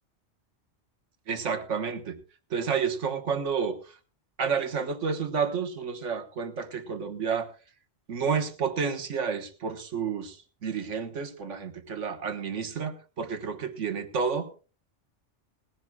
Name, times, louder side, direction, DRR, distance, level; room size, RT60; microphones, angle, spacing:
voice 1, 1.3-2.2 2.5-3.8 4.4-7.5 8.1-10.4 10.6-14.5, right 6 dB, 90° right, 7 dB, 1.6 m, -30 dB
20.0 x 15.5 x 2.3 m, 0.34 s
omnidirectional pair, 1.2 m